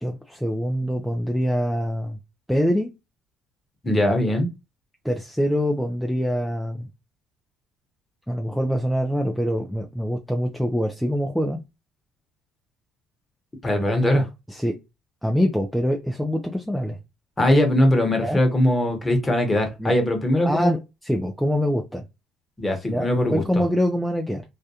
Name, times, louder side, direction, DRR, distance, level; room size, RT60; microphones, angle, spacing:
voice 1, 0.0-2.2 2.5-2.9 5.0-6.9 8.3-11.6 14.5-14.7 15.2-17.0 18.2-18.4 19.8-19.9 20.4-22.0 22.9-24.4, equal, ahead, 0.4 m, -24 dB
voice 2, 3.8-4.5 13.6-14.3 17.4-20.7 22.6-23.6, left 1 dB, 20° left, 1.0 m, -21 dB
2.4 x 2.2 x 2.7 m
supercardioid pair, 90°, 0 cm